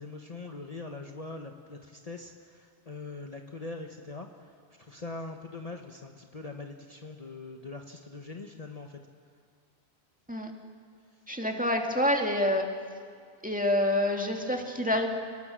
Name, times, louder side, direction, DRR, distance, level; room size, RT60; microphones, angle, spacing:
voice 1, 0.0-4.3 4.8-9.0 11.6-11.7, left 3 dB, 35° left, 3 dB, 1.1 m, -42 dB
voice 2, 11.3-12.7 13.4-15.1, left 1 dB, 5° right, 2 dB, 1.9 m, -27 dB
29.5 x 19.0 x 6.2 m, 2.1 s
omnidirectional pair, 1.1 m